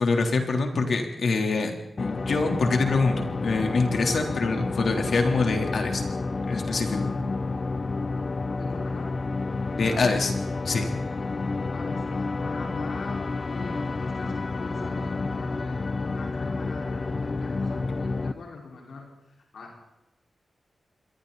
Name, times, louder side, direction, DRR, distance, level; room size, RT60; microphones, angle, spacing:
voice 1, 0.0-1.7 2.0-6.0 6.5-7.1 9.8-10.3 10.7-10.9, left 3 dB, 65° left, 3 dB, 3.6 m, -25 dB
sound 1, 2.0-18.3, left 3 dB, 40° left, 0.9 m, -30 dB
voice 2, 8.4-9.1 9.8-10.1 10.8-11.0 11.7-19.1 19.5-19.8, left 3 dB, 85° left, -1 dB, 5.1 m, -41 dB
27.5 x 22.5 x 4.2 m, 0.88 s
wide cardioid pair, 140°, 0 cm